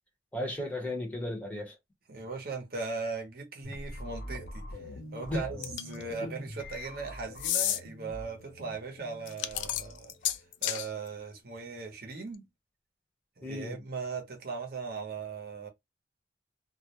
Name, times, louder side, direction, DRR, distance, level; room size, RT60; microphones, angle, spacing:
voice 1, 0.3-1.7 5.3-5.4 6.2-6.3 13.4-13.8, left 1 dB, 10° left, 0.8 m, -34 dB
voice 2, 2.1-4.8 5.1-10.1 10.6-12.5 13.4-15.7, right 4 dB, 55° right, 0.7 m, -39 dB
sound 1, 3.6-10.5, equal, 65° left, 0.7 m, -44 dB
sound 2, 5.6-6.0 7.4-7.8 9.3-10.9, left 12 dB, 85° left, 0.3 m, -30 dB
2.3 x 2.1 x 2.8 m
head